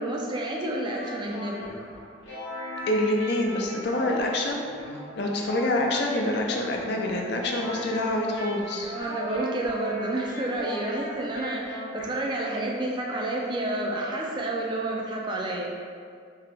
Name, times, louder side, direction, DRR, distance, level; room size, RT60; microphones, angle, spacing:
voice 1, 0.0-1.7 8.9-15.7, right 1 dB, 25° right, -1 dB, 0.3 m, -30 dB
sound 1, 0.9-12.1, equal, 70° left, 1.2 m, -38 dB
voice 2, 2.9-4.7 5.2-8.9, left 1 dB, 55° left, 1 dB, 0.4 m, -26 dB
3.4 x 2.8 x 3.4 m, 2.1 s
head